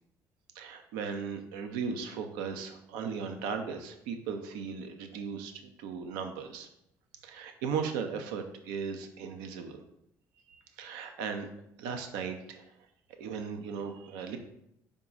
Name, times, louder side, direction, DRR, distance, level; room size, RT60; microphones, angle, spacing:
voice 1, 0.5-6.7 7.2-9.8 10.5-11.5 11.8-12.7 13.2-14.4, right 6 dB, 90° right, 6 dB, 0.6 m, -37 dB
4.9 x 3.6 x 5.4 m, 0.77 s
supercardioid pair, 70°, 7 cm